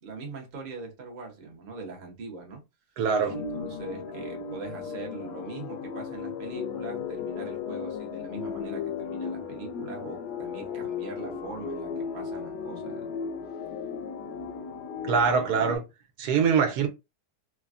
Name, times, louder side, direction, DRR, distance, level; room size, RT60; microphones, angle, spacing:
voice 1, 0.0-2.6 3.3-13.1, right 4 dB, 45° right, 0.6 m, -42 dB
voice 2, 3.0-3.4 15.0-15.8 16.2-16.9, right 6 dB, 80° right, 1.1 m, -23 dB
sound 1, 3.3-15.8, left 6 dB, 85° left, 1.2 m, -35 dB
3.3 x 2.1 x 2.4 m
omnidirectional pair, 1.7 m